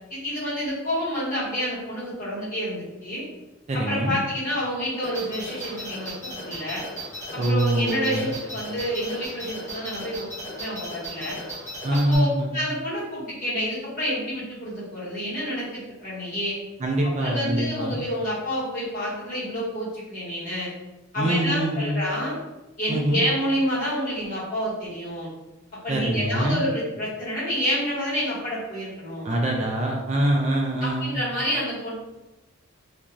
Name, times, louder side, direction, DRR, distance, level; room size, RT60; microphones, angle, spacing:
voice 1, 0.1-3.2 3.7-6.8 7.3-10.3 10.6-11.4 11.9-16.5 17.0-20.7 21.1-22.3 22.8-25.3 25.8-29.3 30.8-31.9, equal, 40° left, -9 dB, 1.2 m, -28 dB
voice 2, 3.7-4.2 7.4-8.3 11.8-12.6 16.8-18.0 21.2-22.0 22.9-23.2 25.9-26.6 29.2-31.2, right 1 dB, 30° right, 0 dB, 0.3 m, -24 dB
sound 1, 5.0-12.2, equal, 10° left, 0.8 m, -36 dB
2.5 x 2.3 x 3.0 m, 1.0 s
head